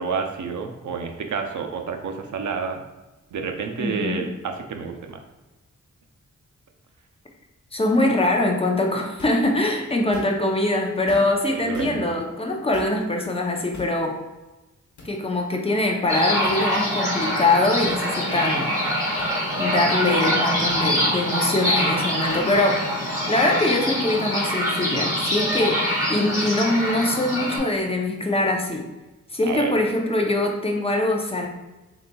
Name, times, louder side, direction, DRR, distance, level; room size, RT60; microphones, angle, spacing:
voice 1, 0.0-2.8 3.3-5.2 11.6-12.2 18.3-18.4 26.0-26.2 29.4-29.7, right 5 dB, 75° right, 4 dB, 0.6 m, -29 dB
voice 2, 3.8-4.2 7.7-14.2 15.0-18.8 19.6-22.9 23.3-28.8 29.3-31.5, left 2 dB, 20° left, 1 dB, 0.6 m, -23 dB
sound 1, 9.2-9.5 10.0-10.6 11.1-11.4 11.7-11.9 12.7-13.0 13.7-14.0 15.0-15.1 16.4-16.6 17.9-18.0 19.2-19.3 20.7-20.8 22.3-22.4, equal, 70° left, 1.1 m, -41 dB
sound 2, 16.1-27.6, equal, 10° right, 1.4 m, -24 dB
3.9 x 3.8 x 2.3 m, 1.1 s
wide cardioid pair, 130°, 30 cm